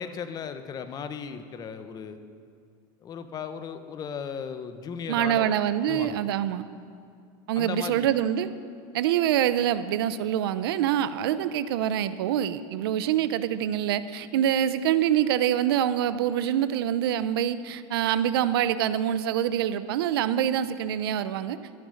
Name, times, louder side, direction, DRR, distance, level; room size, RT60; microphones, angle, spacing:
voice 1, 0.0-2.2 3.0-5.6 5.8-6.2 7.5-8.1, left 6 dB, 30° left, 10 dB, 1.0 m, -36 dB
voice 2, 5.1-6.6 7.5-8.5 8.9-21.6, right 10 dB, 80° right, 13 dB, 0.7 m, -25 dB
14.0 x 10.5 x 6.6 m, 2.3 s
supercardioid pair, 120°, 12 cm